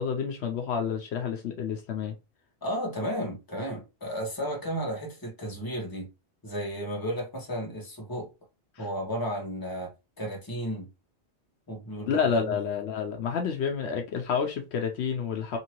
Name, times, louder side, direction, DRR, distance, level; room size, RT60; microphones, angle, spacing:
voice 1, 0.0-2.1 8.8-8.9 12.1-15.6, left 6 dB, 75° left, 0.9 m, -29 dB
voice 2, 2.6-6.1 6.4-8.3 8.8-9.9 10.2-10.9 11.7-12.5, equal, 20° left, 1.1 m, -33 dB
2.9 x 2.7 x 2.9 m
omnidirectional pair, 1.2 m